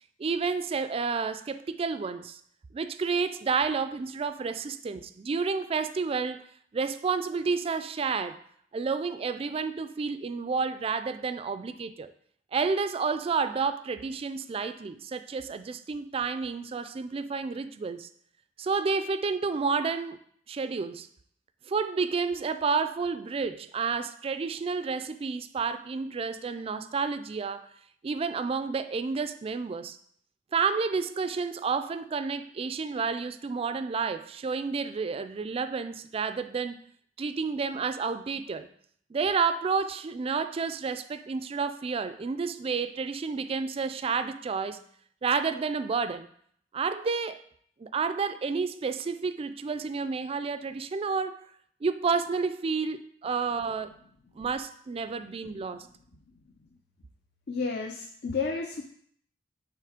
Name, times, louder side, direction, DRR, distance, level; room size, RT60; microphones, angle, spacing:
voice 1, 0.2-2.4 2.7-6.5 6.7-8.4 8.7-12.1 12.5-18.1 18.6-20.2 20.5-21.1 21.7-27.7 28.0-30.0 30.5-36.8 37.2-38.7 39.1-44.8 45.2-46.3 46.7-47.4 47.8-51.4 51.8-54.0 54.4-55.9, right 5 dB, 30° right, 0.3 m, -30 dB
voice 2, 57.5-58.8, left 4 dB, 60° left, 0.5 m, -31 dB
6.6 x 3.1 x 5.0 m
head